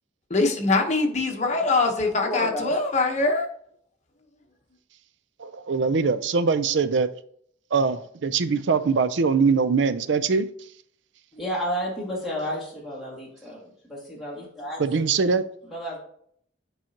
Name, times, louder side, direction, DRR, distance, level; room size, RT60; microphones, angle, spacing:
voice 1, 0.3-3.5, left 3 dB, 35° left, 1.0 m, -23 dB
voice 2, 2.2-2.8 11.3-14.8 15.1-15.2 15.7-16.0, equal, ahead, 2.0 m, -32 dB
voice 3, 5.4-7.1 7.7-10.5 14.8-15.4, right 5 dB, 70° right, 0.5 m, -22 dB
8.9 x 4.8 x 2.9 m
head